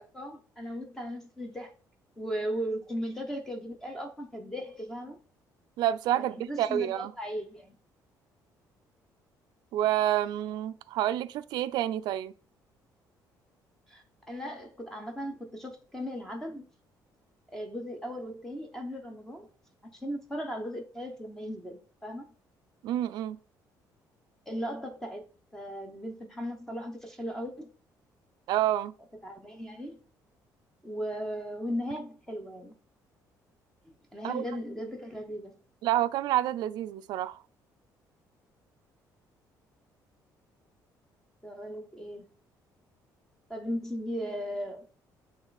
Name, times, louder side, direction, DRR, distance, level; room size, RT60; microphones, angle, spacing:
voice 1, 0.0-1.7 2.2-5.2 6.1-7.8 13.9-16.6 17.5-19.5 19.9-22.3 24.5-25.2 25.5-27.7 29.2-30.0 30.8-32.7 33.9-35.5 41.4-42.3 43.5-44.9, equal, 5° left, 0.8 m, -37 dB
voice 2, 5.8-7.1 9.7-12.3 22.8-23.4 28.5-28.9 34.2-34.4 35.8-37.4, right 12 dB, 75° right, 0.4 m, -28 dB
7.9 x 3.3 x 4.0 m
cardioid pair, 170°, 7 cm